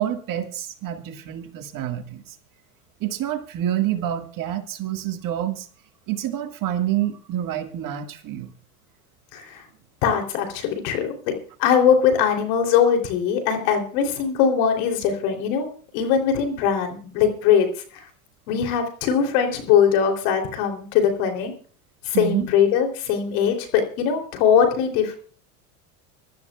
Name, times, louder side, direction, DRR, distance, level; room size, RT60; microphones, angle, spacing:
voice 1, 0.0-2.4 3.0-5.7 6.1-8.5 22.1-22.5, right 11 dB, 45° right, 6 dB, 1.9 m, -27 dB
voice 2, 9.3-9.6 10.0-11.3 11.6-15.7 15.9-17.7 18.5-21.5 22.1-25.2, left 7 dB, 60° left, 5 dB, 3.4 m, -21 dB
25.0 x 12.5 x 2.4 m, 0.42 s
hypercardioid pair, 100°, 47 cm